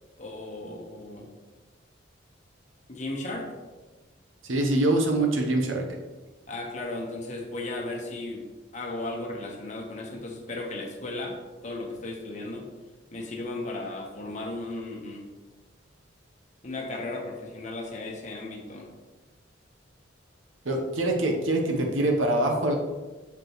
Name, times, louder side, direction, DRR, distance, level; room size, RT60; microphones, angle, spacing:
voice 1, 0.2-1.3 2.9-3.5 6.5-8.5 8.7-11.4 11.6-12.7 13.1-15.3 16.6-18.9, left 2 dB, 40° left, 0 dB, 1.1 m, -35 dB
voice 2, 4.4-5.9 20.6-22.8, right 2 dB, 90° right, 2 dB, 0.9 m, -24 dB
7.0 x 5.1 x 3.1 m, 1.3 s
head